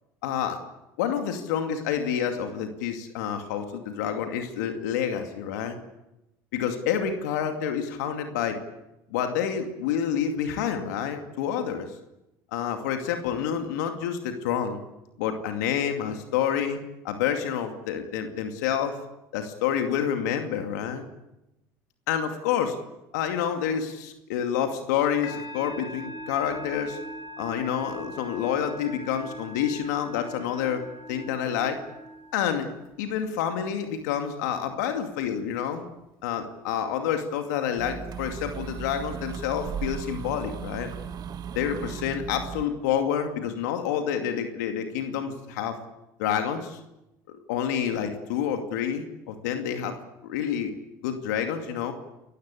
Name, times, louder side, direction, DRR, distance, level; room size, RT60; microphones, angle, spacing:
voice 1, 0.2-0.6 1.0-5.8 6.5-8.6 9.1-11.9 12.5-14.8 15.2-16.8 17.0-19.0 19.3-21.0 22.1-22.8 23.1-27.0 27.4-31.8 32.3-32.7 33.0-35.8 36.2-40.9 41.5-45.8 46.2-46.8 47.5-50.0 50.2-50.7 51.0-51.9, left 8 dB, 85° left, 6 dB, 2.4 m, -28 dB
Musical instrument, 25.2-32.9, equal, 65° left, 4.6 m, -41 dB
sound 1, 37.8-42.6, right 7 dB, 45° right, 1.6 m, -36 dB
29.0 x 15.0 x 8.4 m, 0.91 s
supercardioid pair, 80°, 9 cm